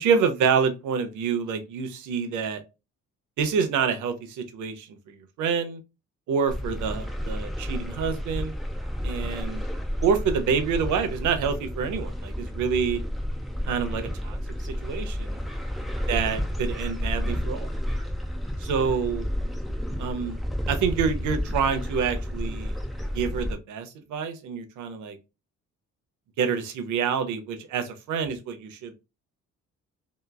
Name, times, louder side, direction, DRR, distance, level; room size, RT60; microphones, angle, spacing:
voice 1, 0.0-2.6 3.4-5.8 6.3-8.5 9.0-9.6 10.0-13.0 13.7-14.4 14.6-15.4 16.1-17.7 18.6-19.3 20.0-20.4 20.7-22.8 23.1-25.2 26.4-28.9, right 6 dB, 80° right, 0.6 m, -27 dB
sound 1, 6.5-23.5, equal, ahead, 0.6 m, -31 dB
2.9 x 2.3 x 2.2 m
cardioid pair, 90°, 30 cm